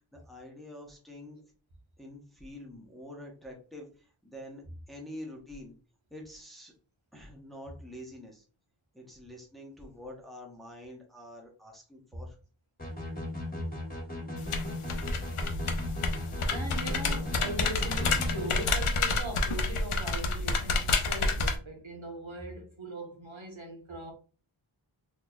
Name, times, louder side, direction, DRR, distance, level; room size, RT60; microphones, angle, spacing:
voice 1, 0.1-1.4 2.0-4.6 4.9-5.7 6.1-6.7 7.1-8.4 8.9-12.4, left 1 dB, ahead, 1.0 m, -46 dB
sound 1, 12.8-18.7, left 2 dB, 15° left, 1.5 m, -37 dB
sound 2, 14.4-21.6, left 3 dB, 80° left, 0.6 m, -29 dB
voice 2, 16.4-24.1, right 1 dB, 65° right, 1.2 m, -40 dB
3.9 x 3.1 x 2.3 m
wide cardioid pair, 45°, 50 cm